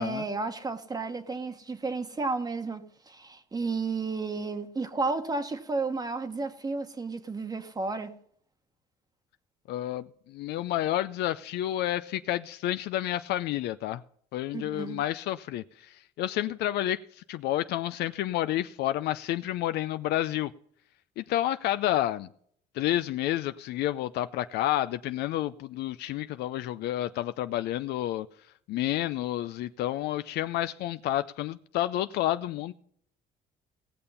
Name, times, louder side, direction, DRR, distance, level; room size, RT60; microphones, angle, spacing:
voice 1, 0.0-8.2 14.5-15.0, right 3 dB, 25° right, 1.1 m, -32 dB
voice 2, 9.7-14.0 14.3-17.0 17.3-20.5 21.2-22.3 22.7-28.3 28.7-32.7, left 13 dB, 75° left, 0.5 m, -30 dB
18.0 x 6.9 x 5.5 m
cardioid pair, 110°, 17 cm